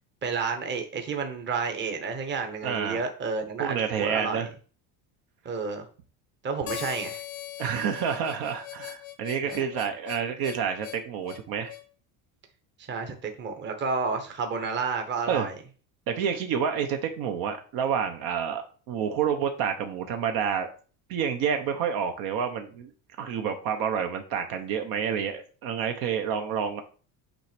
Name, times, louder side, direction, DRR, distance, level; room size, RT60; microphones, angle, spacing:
voice 1, 0.2-4.4 5.4-5.8 6.4-7.2 9.4-9.6 12.9-15.5, right 5 dB, 25° right, 5 dB, 1.1 m, -31 dB
voice 2, 2.6-3.0 3.6-4.5 7.6-11.7 15.3-15.5 16.1-20.7 21.1-22.9 23.2-26.8, right 7 dB, 55° right, 6 dB, 1.1 m, -29 dB
Harmonica, 6.7-11.9, left 14 dB, 85° left, 1.1 m, -40 dB
9.0 x 3.3 x 5.1 m, 0.39 s
cardioid pair, 160°, 43 cm